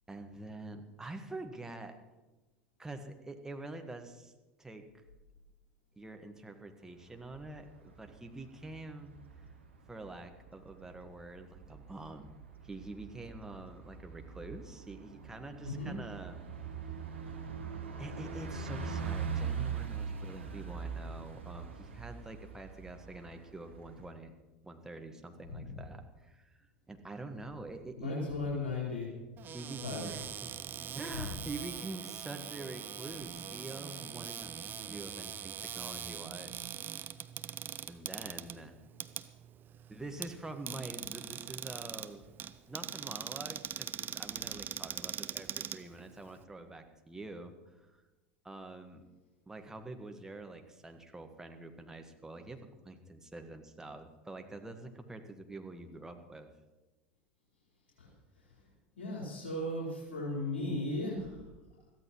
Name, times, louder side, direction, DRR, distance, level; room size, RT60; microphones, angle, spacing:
voice 1, 0.1-2.0 2.8-4.3 4.6-4.8 6.0-9.1 9.9-12.4 12.6-16.4 16.8-16.9 18.0-24.3 24.6-28.1 29.5-30.5 30.9-36.5 37.9-38.8 39.9-42.2 42.7-48.0 48.4-49.0 49.5-56.5, right 2 dB, 10° right, 5 dB, 1.6 m, -46 dB
Bus, 7.0-24.1, right 6 dB, 75° right, 1.6 m, -42 dB
voice 2, 28.0-29.1 29.8-30.0 31.1-31.2 58.0-58.1 59.0-61.5, left 2 dB, 65° left, -5 dB, 4.5 m, -36 dB
Cupboard open or close, 29.4-46.4, right 9 dB, 30° right, 0.7 m, -42 dB
22.0 x 14.5 x 3.2 m, 1.1 s
figure-of-eight pair, 75°, 6 cm